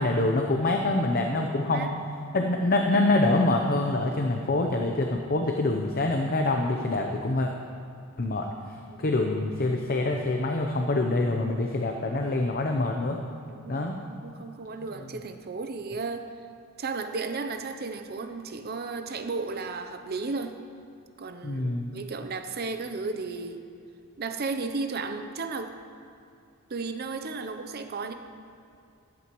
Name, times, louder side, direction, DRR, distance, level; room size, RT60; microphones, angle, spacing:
voice 1, 0.0-1.9 2.3-7.5 8.2-8.5 9.0-13.2 13.7-14.0 21.4-21.9, left 2 dB, 45° left, 2 dB, 0.7 m, -25 dB
voice 2, 1.4-1.9 8.9-9.2 13.5-16.3 16.8-20.6 21.2-23.6 24.2-25.7 26.7-28.1, right 4 dB, 45° right, 7 dB, 0.7 m, -34 dB
13.5 x 11.5 x 3.1 m, 2.6 s
head